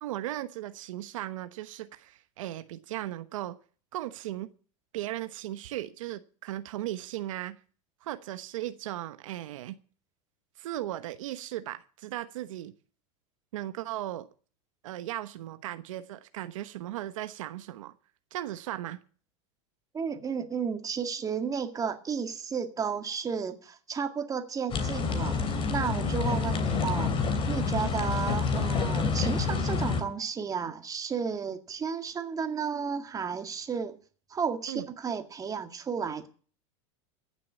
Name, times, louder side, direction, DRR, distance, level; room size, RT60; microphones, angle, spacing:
voice 1, 0.0-3.6 3.9-4.5 4.9-7.5 8.0-9.7 10.6-12.7 13.5-14.3 14.8-17.9 18.3-19.0 34.7-34.8, right 14 dB, 80° right, 10 dB, 1.1 m, -37 dB
voice 2, 19.9-25.4 25.7-27.1 27.5-33.9 34.3-36.3, right 6 dB, 20° right, 7 dB, 2.0 m, -33 dB
sound 1, 24.7-30.0, left 4 dB, 30° left, 3.1 m, -28 dB
15.0 x 7.7 x 8.7 m, 0.41 s
supercardioid pair, 120°, 17 cm